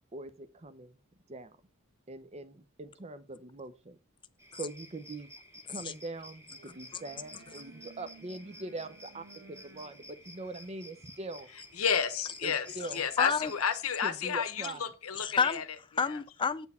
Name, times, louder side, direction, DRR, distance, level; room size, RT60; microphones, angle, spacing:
voice 1, 0.1-1.0 1.3-1.6 2.1-4.0 4.6-5.3 5.7-11.5 12.4-13.1 14.0-14.8, right 2 dB, 30° right, 0.6 m, -42 dB
sound 1, 4.4-13.8, left 1 dB, 15° right, 1.4 m, -52 dB
sound 2, 6.4-11.7, right 3 dB, 75° right, 1.3 m, -57 dB
voice 2, 11.8-12.7 12.9-15.6, left 7 dB, 80° left, 0.9 m, -31 dB
voice 3, 12.8-13.5 15.1-16.7, left 5 dB, 25° left, 0.4 m, -31 dB
8.3 x 4.5 x 5.4 m
head